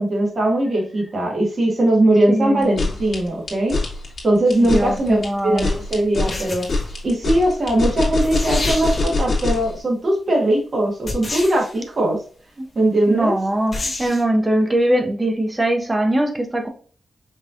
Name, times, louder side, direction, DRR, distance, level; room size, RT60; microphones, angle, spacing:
voice 1, 0.0-3.8 4.2-6.7 7.0-12.2 12.8-13.4, right 1 dB, 40° right, 2.0 m, -20 dB
voice 2, 2.3-2.8 4.6-5.7 12.6-12.7 13.1-16.7, right 1 dB, 20° right, 1.0 m, -21 dB
sound 1, 2.6-9.7, left 3 dB, 55° left, 2.0 m, -23 dB
sound 2, 4.5-4.7 6.2-7.0 7.9-8.0 8.2-9.2 11.1-11.8 13.7-14.2, left 2 dB, 35° left, 1.6 m, -29 dB
5.4 x 3.4 x 2.5 m
wide cardioid pair, 120°, 0 cm